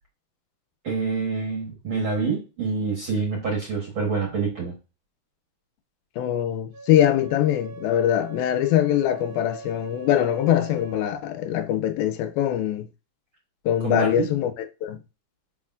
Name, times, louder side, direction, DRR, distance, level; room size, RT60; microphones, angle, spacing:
voice 1, 0.8-4.7 13.8-14.3, right 4 dB, 50° right, 1.6 m, -26 dB
voice 2, 6.2-12.9 13.7-15.0, left 11 dB, 80° left, 2.5 m, -23 dB
Wind instrument woodwind instrument, 6.7-11.2, right 4 dB, 75° right, 1.5 m, -42 dB
10.5 x 4.9 x 2.5 m
omnidirectional pair, 4.3 m